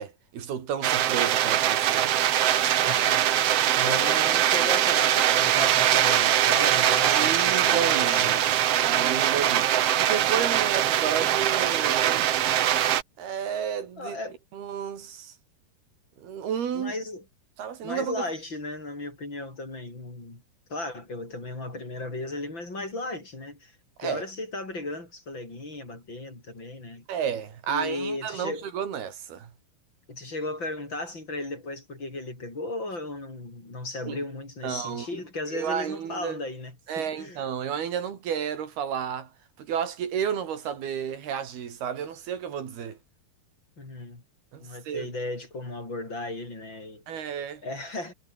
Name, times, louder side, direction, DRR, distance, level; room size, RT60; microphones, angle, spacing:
voice 1, 0.0-2.1 3.7-4.0 7.0-12.3 13.2-14.2 14.5-15.3 16.2-16.9 17.6-18.2 24.0-24.2 27.1-29.5 34.1-34.2 34.6-35.1 35.5-36.4 36.9-39.3 39.6-43.0 44.5-45.1 47.1-47.6, right 8 dB, 85° right, 4.9 m, -32 dB
sound 1, 0.8-13.0, right 11 dB, 65° right, 1.5 m, -22 dB
voice 2, 2.8-8.4 9.4-9.6 14.0-14.4 16.7-17.2 17.8-20.4 20.7-23.7 24.0-27.1 27.7-28.7 30.1-37.4 43.8-44.2 44.6-47.0 47.6-48.1, left 2 dB, 30° left, 6.9 m, -35 dB
omnidirectional pair, 4.4 m